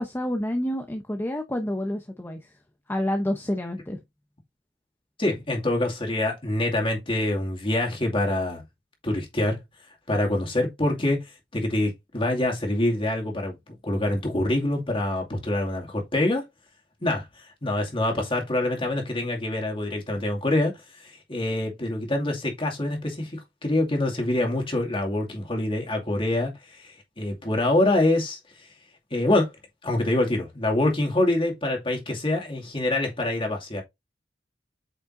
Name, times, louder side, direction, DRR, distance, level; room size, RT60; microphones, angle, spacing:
voice 1, 0.0-2.4 2.9-4.0, left 1 dB, 10° left, 0.8 m, -28 dB
voice 2, 5.2-8.6 9.0-9.6 10.1-11.2 11.5-16.4 17.0-17.2 17.6-20.8 21.3-26.5 26.8-26.9 27.2-28.4 29.1-29.5 29.8-33.8, left 1 dB, 30° left, 2.4 m, -25 dB
8.5 x 5.4 x 2.7 m
head